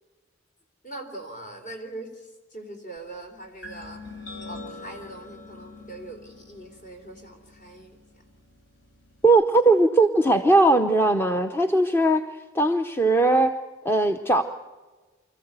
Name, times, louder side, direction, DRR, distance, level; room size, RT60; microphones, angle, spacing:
voice 1, 0.8-4.0 4.5-8.0, right 2 dB, 40° left, 4 dB, 3.6 m, -41 dB
sound 1, 3.6-9.3, left 2 dB, 65° left, 5.7 m, -44 dB
voice 2, 9.2-12.3 12.5-13.5 13.8-14.4, right 2 dB, 10° left, 7 dB, 0.7 m, -19 dB
24.5 x 14.5 x 8.1 m, 1.3 s
head